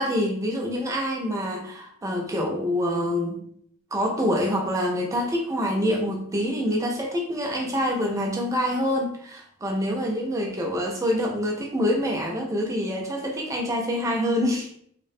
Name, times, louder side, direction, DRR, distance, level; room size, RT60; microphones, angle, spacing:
voice 1, 0.0-3.4 3.9-14.7, equal, 15° right, 0 dB, 0.3 m, -26 dB
2.3 x 2.1 x 2.5 m, 0.65 s
head